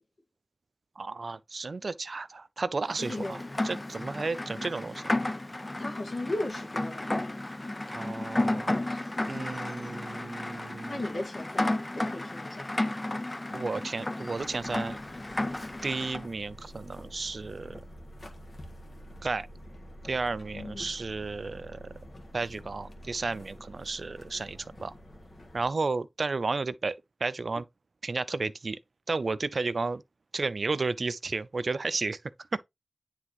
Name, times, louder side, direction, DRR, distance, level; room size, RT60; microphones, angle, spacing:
voice 1, 1.0-5.0 7.9-11.0 13.5-15.0 15.8-17.8 19.2-19.5 20.0-21.8 22.3-24.9 25.5-27.0 27.2-27.7 28.0-28.8 29.1-30.0 30.3-32.2 32.5-32.6, right 3 dB, 65° right, 0.5 m, -33 dB
Rain, 2.9-16.2, left 1 dB, 30° left, 0.5 m, -33 dB
voice 2, 3.0-3.4 5.8-7.4 10.9-12.8 20.5-20.9, left 2 dB, 75° left, 1.8 m, -37 dB
sound 1, 14.3-25.7, equal, 60° left, 1.7 m, -48 dB
9.6 x 3.5 x 3.0 m
wide cardioid pair, 55°, 0 cm